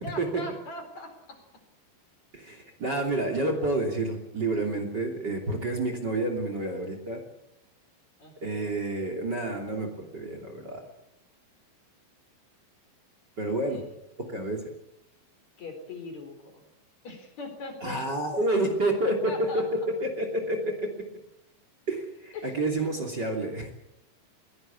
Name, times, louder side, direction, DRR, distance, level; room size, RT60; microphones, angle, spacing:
voice 1, 0.0-1.4 8.2-8.6 13.7-13.8 15.6-16.6 17.0-18.0 19.3-19.7 22.3-22.6, left 2 dB, 50° left, 6 dB, 5.3 m, -40 dB
voice 2, 2.3-7.2 8.4-10.8 13.4-13.8 14.3-14.6 17.8-20.9 21.9-23.7, right 2 dB, 30° right, 5 dB, 3.3 m, -29 dB
21.5 x 17.5 x 8.5 m, 0.82 s
omnidirectional pair, 4.1 m